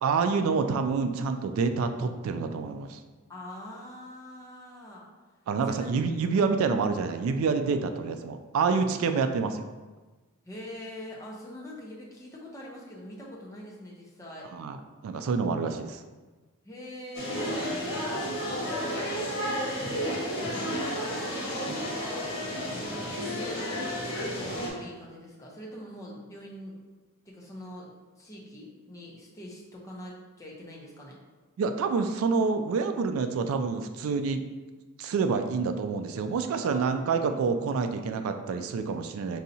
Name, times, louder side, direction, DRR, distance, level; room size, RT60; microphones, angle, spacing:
voice 1, 0.0-3.0 5.5-9.6 14.5-14.8 15.0-16.0 31.6-34.4 35.0-39.4, right 5 dB, 80° right, 7 dB, 0.3 m, -27 dB
voice 2, 3.3-5.1 5.7-5.9 6.3-6.5 10.5-14.5 16.6-17.6 17.8-21.2 21.4-22.3 22.7-26.8 27.3-31.1 36.6-37.5, left 1 dB, 15° left, -4 dB, 0.6 m, -44 dB
sound 1, 17.1-24.7, equal, 70° left, 1.2 m, -32 dB
5.3 x 2.7 x 2.7 m, 1.3 s
head